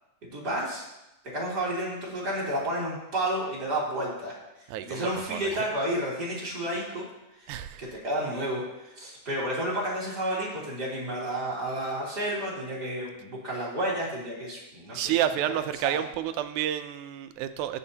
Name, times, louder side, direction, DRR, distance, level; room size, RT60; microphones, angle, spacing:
voice 1, 0.2-0.8 1.2-4.4 4.8-7.1 7.4-15.1 15.8-16.0, right 1 dB, 35° right, -6 dB, 3.4 m, -31 dB
voice 2, 4.7-5.6 7.5-7.8 14.9-17.8, right 11 dB, 85° right, 10 dB, 2.1 m, -30 dB
19.0 x 7.3 x 2.8 m, 0.93 s
omnidirectional pair, 3.4 m